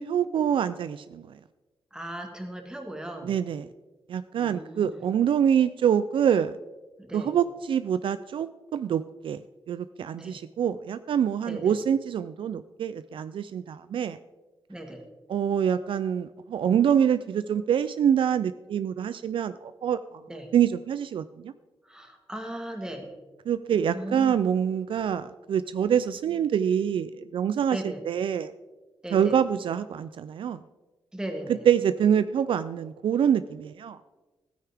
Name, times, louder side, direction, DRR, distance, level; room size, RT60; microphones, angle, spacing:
voice 1, 0.0-1.4 3.2-3.7 4.1-6.6 7.1-9.4 9.7-14.2 15.3-20.2 20.5-21.5 23.5-28.5 29.1-30.6 31.5-34.0, right 8 dB, 65° right, 13 dB, 0.3 m, -25 dB
voice 2, 1.9-3.4 4.4-5.0 7.0-7.3 10.2-10.4 11.5-11.7 14.7-15.0 20.3-20.5 21.8-23.1 23.9-24.4 27.7-28.0 29.0-29.3 31.1-31.6, right 1 dB, 10° right, 3 dB, 1.6 m, -37 dB
15.5 x 9.3 x 3.5 m, 1.2 s
wide cardioid pair, 150°, 9 cm